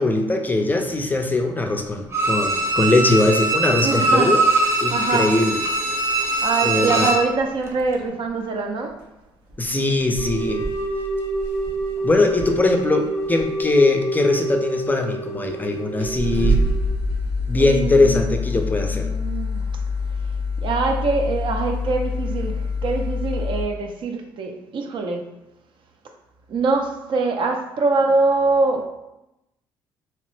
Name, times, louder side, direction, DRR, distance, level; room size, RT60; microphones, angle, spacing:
voice 1, 0.0-4.4 4.8-5.6 6.6-7.1 9.6-10.6 12.0-16.6 17.5-19.1, left 2 dB, 15° left, 4 dB, 0.4 m, -20 dB
Bowed string instrument, 2.1-7.3 7.7-7.8, right 2 dB, 25° right, 0.7 m, -21 dB
voice 2, 3.8-4.4 4.9-5.3 6.4-9.0 17.6-19.7 20.6-25.3 26.5-28.9, right 3 dB, 55° right, 4 dB, 0.5 m, -24 dB
sound 1, 8.8-9.0 9.5-9.6 10.0-12.7 13.2-13.6 14.5-14.6 15.5-15.6 16.0-23.6, left 2 dB, 80° right, 0.9 m, -26 dB
sound 2, 10.2-16.9, right 1 dB, 90° left, 0.4 m, -28 dB
2.9 x 2.0 x 3.1 m, 0.91 s
supercardioid pair, 70°, 10 cm